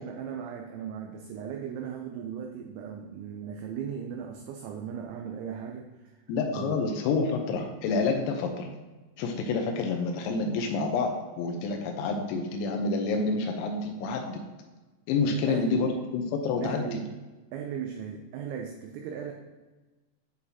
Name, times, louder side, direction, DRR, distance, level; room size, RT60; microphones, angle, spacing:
voice 1, 0.0-6.2 6.5-6.8 15.3-15.9 16.6-17.1 17.5-19.3, right 8 dB, 85° right, 2 dB, 2.6 m, -37 dB
voice 2, 6.3-8.7 9.2-14.4 15.1-17.0, left 4 dB, 85° left, 3 dB, 3.4 m, -28 dB
9.9 x 4.0 x 2.8 m, 1.2 s
omnidirectional pair, 5.9 m